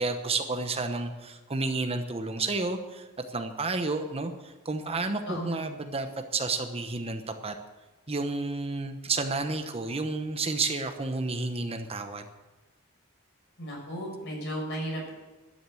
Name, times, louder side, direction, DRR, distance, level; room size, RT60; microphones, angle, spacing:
voice 1, 0.0-7.6 8.1-12.3, right 3 dB, 30° right, 7 dB, 0.9 m, -31 dB
voice 2, 5.3-5.6 13.6-15.1, right 1 dB, 55° left, -1 dB, 6.2 m, -34 dB
12.5 x 10.5 x 7.7 m, 1.2 s
head